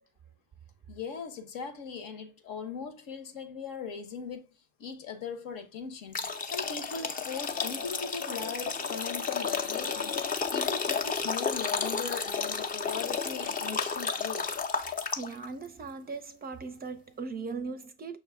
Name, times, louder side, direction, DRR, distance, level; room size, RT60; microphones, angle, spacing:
voice 1, 0.9-4.5 4.8-14.6, left 6 dB, 60° left, 1.0 m, -39 dB
sound 1, 6.1-15.5, left 5 dB, 25° left, 0.6 m, -32 dB
voice 2, 15.1-18.2, right 4 dB, 25° right, 0.5 m, -39 dB
6.0 x 2.0 x 3.4 m
hypercardioid pair, 70°, 35 cm